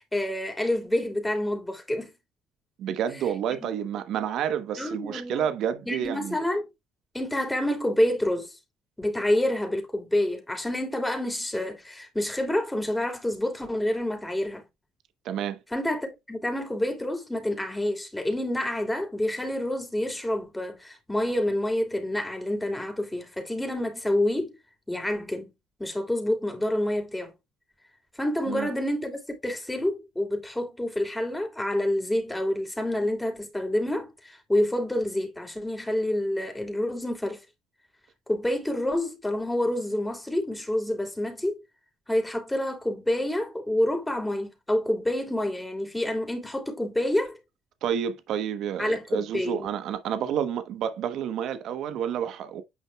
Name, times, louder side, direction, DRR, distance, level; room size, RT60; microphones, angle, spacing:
voice 1, 0.0-2.1 3.6-3.7 4.8-5.5 5.9-6.7 7.1-8.6 9.0-14.6 15.7-24.5 24.9-25.5 25.8-27.3 28.1-37.4 38.3-41.6 42.1-47.4 48.8-49.7, left 1 dB, 10° left, 2.9 m, -28 dB
voice 2, 2.8-6.4 15.2-15.6 28.5-28.7 47.8-52.6, right 9 dB, 65° right, 1.0 m, -29 dB
9.5 x 5.4 x 2.3 m
hypercardioid pair, 65°, 0 cm